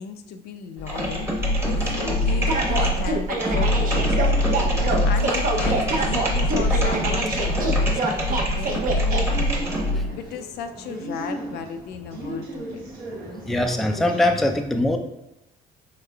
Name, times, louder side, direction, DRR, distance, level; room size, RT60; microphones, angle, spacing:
voice 1, 0.0-1.4 1.6-4.5 5.0-9.8 10.1-12.9, left 7 dB, 70° left, 7 dB, 0.4 m, -35 dB
sound 1, 0.8-10.1, left 1 dB, 15° right, 0.9 m, -23 dB
sound 2, 1.7-14.4, right 1 dB, 70° right, 1.1 m, -38 dB
sound 3, 2.5-9.2, right 3 dB, 55° right, 0.7 m, -26 dB
voice 2, 13.5-15.0, left 1 dB, ahead, 5 dB, 0.3 m, -22 dB
4.9 x 3.5 x 2.3 m, 0.90 s
cardioid pair, 110°, 17 cm